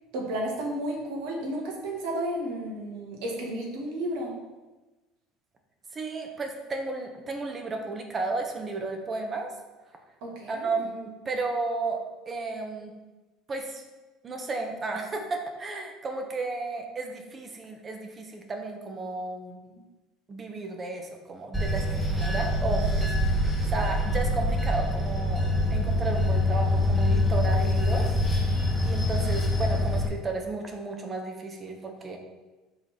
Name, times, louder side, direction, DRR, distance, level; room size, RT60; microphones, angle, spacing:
voice 1, 0.1-4.4 10.2-10.8 19.7-19.8 29.1-29.3, right 1 dB, 70° right, -1 dB, 1.9 m, -33 dB
voice 2, 5.9-9.5 10.5-12.9 13.5-13.8 14.2-19.6 20.3-21.9 22.2-25.4 25.7-28.1 28.4-28.5 28.8-32.2, right 3 dB, 35° right, 3 dB, 1.4 m, -33 dB
Bell / Train, 21.5-30.1, left 1 dB, 5° left, 1.6 m, -25 dB
5.9 x 3.9 x 6.1 m, 1.2 s
hypercardioid pair, 80°, 0 cm